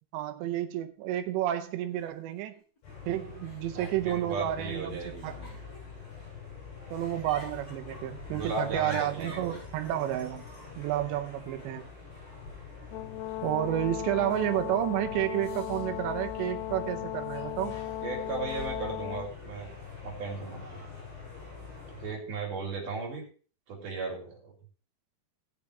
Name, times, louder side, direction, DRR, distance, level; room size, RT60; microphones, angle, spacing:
voice 1, 0.1-2.6 3.1-5.4 6.9-10.4 10.8-11.9 13.4-17.8, right 13 dB, 80° right, 7 dB, 3.0 m, -31 dB
Giggle, 0.8-0.9 1.9-2.0 2.3-2.8 3.4-4.5 5.1-6.5 6.9-8.0 8.2-9.6, left 2 dB, 20° left, 4.6 m, -46 dB
sound 1, 2.8-22.1, left 5 dB, 65° left, 9.3 m, -45 dB
voice 2, 3.8-5.6 8.3-9.6 18.0-19.7 20.0-20.8 22.0-23.2 23.7-24.5, right 4 dB, 50° right, -2 dB, 4.6 m, -36 dB
Brass instrument, 12.9-19.3, left 15 dB, 80° left, 2.4 m, -37 dB
19.0 x 6.8 x 3.3 m, 0.39 s
omnidirectional pair, 5.2 m